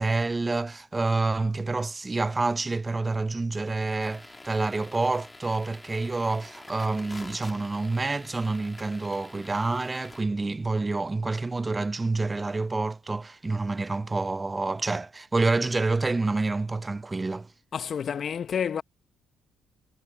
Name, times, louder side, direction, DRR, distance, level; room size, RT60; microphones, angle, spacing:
voice 1, 0.0-17.5, right 3 dB, 25° right, 0.5 m, -28 dB
sound 1, 4.0-10.2, left 2 dB, 20° left, 2.1 m, -47 dB
voice 2, 17.7-18.8, left 7 dB, 55° left, 0.8 m, -29 dB
supercardioid pair, 60°, 0 cm